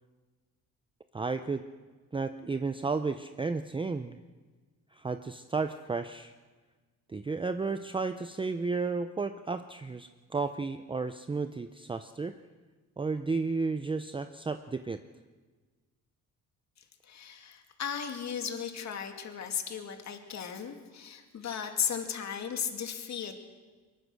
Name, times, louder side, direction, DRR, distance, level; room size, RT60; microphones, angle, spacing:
voice 1, 1.1-1.6 2.1-4.2 4.9-6.3 7.1-12.3 13.0-15.0, right 4 dB, 15° right, 9 dB, 0.6 m, -33 dB
voice 2, 17.0-23.4, left 7 dB, 55° left, 5 dB, 2.5 m, -36 dB
23.0 x 22.0 x 6.3 m, 1.4 s
cardioid pair, 125°, 33 cm